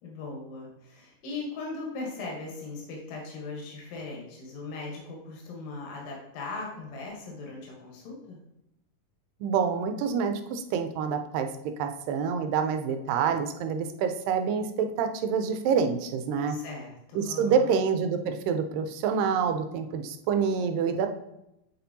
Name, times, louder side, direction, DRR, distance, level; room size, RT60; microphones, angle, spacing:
voice 1, 0.0-8.4 16.5-17.8, left 3 dB, 80° left, -2 dB, 2.8 m, -39 dB
voice 2, 9.4-11.5 11.8-16.6 17.2-21.1, right 6 dB, 90° right, 7 dB, 2.3 m, -27 dB
8.2 x 4.3 x 2.7 m, 0.85 s
omnidirectional pair, 3.8 m